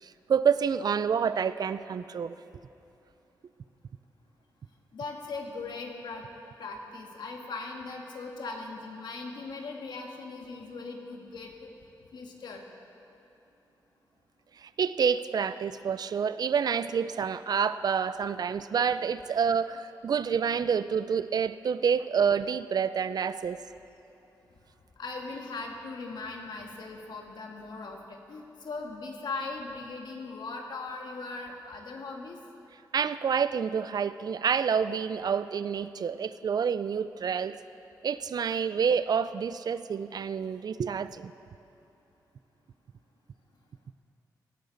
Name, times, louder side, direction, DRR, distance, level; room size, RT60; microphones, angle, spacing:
voice 1, 0.0-2.4 14.6-23.6 32.9-37.6 38.0-41.3, right 7 dB, 60° right, 14 dB, 0.4 m, -28 dB
voice 2, 4.9-6.2 6.6-11.7 12.1-12.6 25.0-32.4, left 3 dB, 75° left, 1 dB, 1.6 m, -39 dB
17.5 x 13.0 x 4.0 m, 2.8 s
cardioid pair, 70°, 7 cm